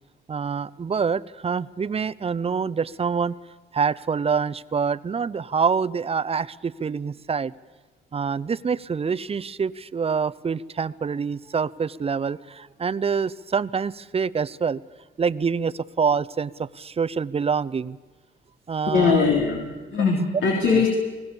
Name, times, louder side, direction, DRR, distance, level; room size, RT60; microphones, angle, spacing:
voice 1, 0.3-3.3 3.7-7.5 8.1-14.8 15.2-18.0 18.7-19.2 20.7-20.8, right 6 dB, 30° right, 15 dB, 0.7 m, -26 dB
voice 2, 18.9-19.6 19.9-20.9, left 5 dB, 70° left, 0 dB, 3.6 m, -20 dB
29.0 x 19.0 x 7.1 m, 1.2 s
cardioid pair, 90°, 20 cm